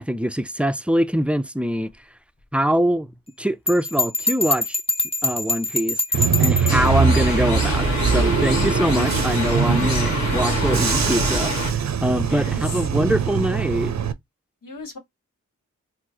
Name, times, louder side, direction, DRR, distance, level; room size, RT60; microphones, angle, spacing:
voice 1, 0.0-1.9 2.5-3.1 3.4-4.8 5.2-13.9, equal, 5° right, 0.4 m, -23 dB
Bell, 3.7-6.9, left 2 dB, 20° left, 0.8 m, -24 dB
Bus / Engine, 6.1-14.1, right 7 dB, 60° right, 0.6 m, -23 dB
sound 1, 6.7-11.7, left 1 dB, 60° left, 1.6 m, -25 dB
voice 2, 12.2-12.8 14.6-15.0, left 3 dB, 85° left, 1.2 m, -36 dB
4.4 x 2.0 x 2.8 m
cardioid pair, 45°, 32 cm